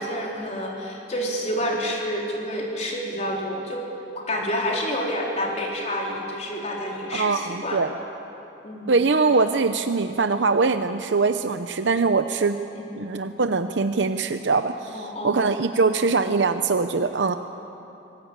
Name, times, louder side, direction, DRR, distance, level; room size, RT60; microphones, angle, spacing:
voice 1, 0.0-3.8 4.1-7.8 8.6-8.9 12.7-12.9 14.9-15.4, equal, 40° left, -2 dB, 4.1 m, -29 dB
voice 2, 7.1-7.9 8.9-12.6 12.9-17.4, right 4 dB, 85° right, 8 dB, 0.7 m, -22 dB
25.5 x 18.5 x 8.9 m, 2.9 s
head